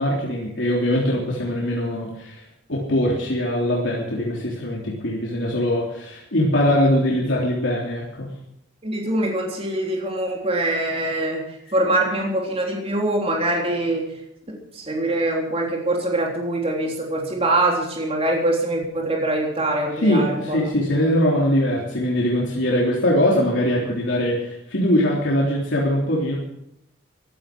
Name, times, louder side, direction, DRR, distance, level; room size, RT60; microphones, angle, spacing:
voice 1, 0.0-2.4 2.7-8.3 19.9-26.4, left 1 dB, 75° left, -4 dB, 3.5 m, -22 dB
voice 2, 8.8-11.4 11.7-14.1 14.5-20.6, right 1 dB, 30° right, 0 dB, 3.6 m, -23 dB
16.0 x 13.0 x 6.2 m, 0.80 s
head